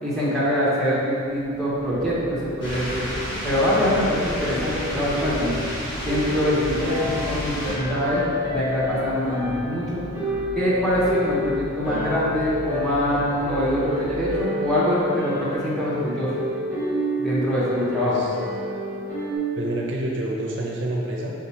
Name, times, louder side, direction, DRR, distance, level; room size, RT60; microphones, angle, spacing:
voice 1, 0.0-3.0 3.4-5.5 6.0-10.0 10.5-16.3 17.2-18.2, left 1 dB, ahead, -9 dB, 0.8 m, -24 dB
sound 1, 1.3-14.4, equal, 65° left, 0.6 m, -39 dB
sound 2, 1.8-19.4, equal, 15° right, 1.3 m, -30 dB
sound 3, 2.6-7.7, equal, 20° left, 1.5 m, -32 dB
voice 2, 18.0-18.4 19.6-21.3, right 1 dB, 60° right, -2 dB, 0.5 m, -28 dB
3.5 x 2.7 x 4.4 m, 2.5 s
head